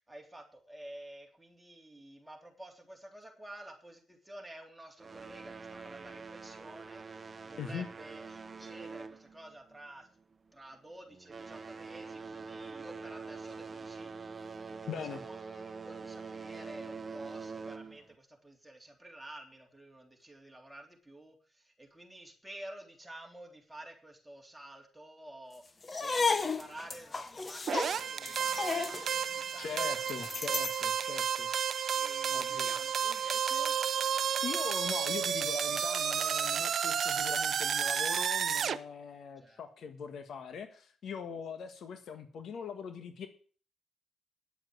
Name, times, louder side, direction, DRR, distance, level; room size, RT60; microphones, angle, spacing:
voice 1, 0.0-10.1 10.5-14.1 14.7-30.1 30.4-30.7 31.9-33.7 39.4-39.6, right 1 dB, 5° right, 1 dB, 3.4 m, -51 dB
sound 1, 5.0-9.9 10.2-10.5 11.1-18.1, right 4 dB, 30° right, 1.1 m, -45 dB
voice 2, 14.9-15.2 29.6-31.5 32.3-32.7 34.4-43.3, left 6 dB, 65° left, 8 dB, 1.5 m, -41 dB
sound 2, 25.8-30.8, left 4 dB, 30° left, 1.0 m, -34 dB
sound 3, 27.7-38.8, right 8 dB, 55° right, 0.7 m, -32 dB
10.0 x 7.9 x 7.9 m, 0.43 s
cardioid pair, 90°, 0 cm